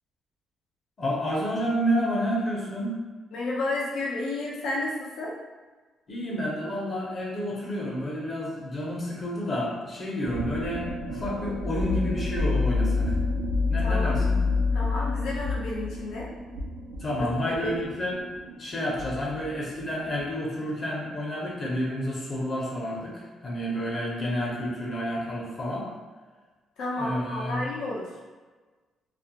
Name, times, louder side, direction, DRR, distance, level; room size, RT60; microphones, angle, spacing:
voice 1, 1.0-3.0 6.1-13.1 13.7-14.4 17.0-18.3 18.6-25.9 27.0-27.6, equal, 40° left, -5 dB, 0.7 m, -30 dB
voice 2, 3.3-5.4 13.8-14.1 14.7-16.3 17.2-17.3 17.6-17.7 26.8-28.1, left 2 dB, 80° left, -4 dB, 0.6 m, -31 dB
sound 1, 10.2-20.2, left 3 dB, 85° right, 0.4 m, -28 dB
2.4 x 2.1 x 2.8 m, 1.3 s
cardioid pair, 90°, 0 cm